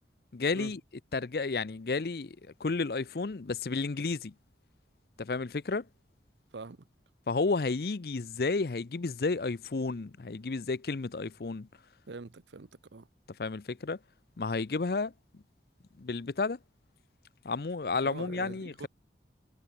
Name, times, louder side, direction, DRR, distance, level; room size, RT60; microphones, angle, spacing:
voice 1, 0.3-0.8 1.1-4.3 5.2-5.9 7.3-11.7 13.4-14.0 14.4-15.4 16.0-16.6 17.4-18.9, left 3 dB, 60° left, 0.6 m, -32 dB
voice 2, 6.5-6.9 12.1-13.1 18.0-18.9, right 3 dB, 80° right, 0.7 m, -44 dB
head